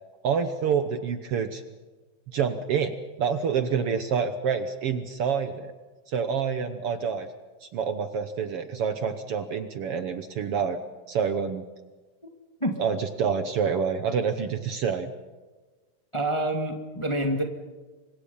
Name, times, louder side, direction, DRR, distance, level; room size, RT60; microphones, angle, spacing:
voice 1, 0.2-1.6 2.3-5.7 6.1-7.3 7.6-10.8 11.1-11.7 12.8-15.1, right 6 dB, 60° right, 9 dB, 1.7 m, -27 dB
voice 2, 16.1-17.4, right 1 dB, 10° left, 3 dB, 1.6 m, -27 dB
29.5 x 25.0 x 5.6 m, 1.3 s
omnidirectional pair, 3.3 m